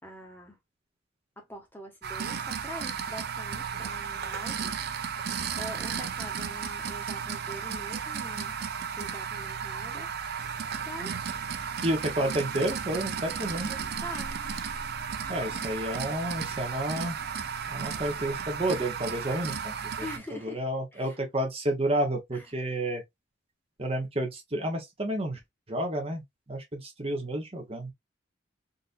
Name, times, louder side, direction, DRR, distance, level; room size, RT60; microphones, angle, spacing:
voice 1, 0.0-0.6 1.4-4.6 5.6-8.6 8.9-10.1 10.8-11.1 14.0-14.3 15.5-15.7 20.0-20.6 20.9-21.2 22.3-22.5, equal, 10° left, 1.0 m, -44 dB
sound 1, 2.0-20.2, right 6 dB, 55° right, 0.5 m, -34 dB
voice 2, 11.8-13.8 15.3-17.2 17.7-19.9 20.4-23.0 23.8-25.4 25.7-26.2 26.5-27.9, right 1 dB, 30° right, 0.9 m, -30 dB
3.9 x 2.6 x 2.4 m
head